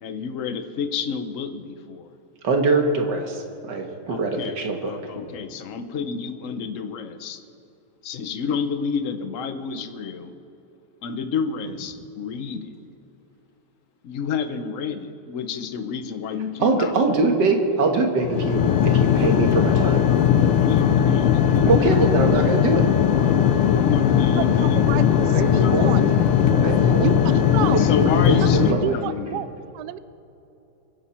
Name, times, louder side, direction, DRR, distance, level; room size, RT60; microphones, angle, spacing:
voice 1, 0.0-2.1 4.1-7.4 8.0-10.3 11.0-12.7 14.0-16.9 20.6-21.7 23.7-25.0 25.5-25.8 27.6-29.4, left 6 dB, 65° left, 9 dB, 0.7 m, -30 dB
voice 2, 2.4-4.9 16.6-20.0 21.7-22.8 25.3-25.9 26.4-27.1 27.7-28.9, right 3 dB, 55° right, 3 dB, 2.0 m, -23 dB
sound 1, 18.2-28.7, left 9 dB, 85° left, 1.6 m, -18 dB
voice 3, 24.3-26.1 27.0-27.8 28.4-29.5 29.7-30.0, right 12 dB, 90° right, 15 dB, 0.9 m, -30 dB
24.0 x 10.5 x 4.4 m, 2.8 s
omnidirectional pair, 2.4 m